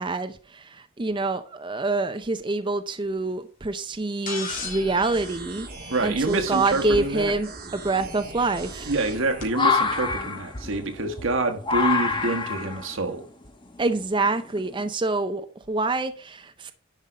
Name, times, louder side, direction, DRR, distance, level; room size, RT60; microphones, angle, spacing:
voice 1, 0.0-5.7 6.0-8.9 13.8-16.7, right 3 dB, 25° right, 0.5 m, -26 dB
sound 1, 4.3-6.6 8.1-8.2 9.4-9.5, left 4 dB, 40° left, 2.6 m, -37 dB
sound 2, 4.5-9.5, right 3 dB, 45° right, 2.1 m, -40 dB
sound 3, 5.0-5.6 6.2-6.3 6.8-14.9, left 4 dB, 25° left, 1.3 m, -28 dB
voice 2, 5.9-7.3 8.9-13.3, right 2 dB, 75° right, 1.5 m, -26 dB
10.5 x 5.3 x 5.0 m
head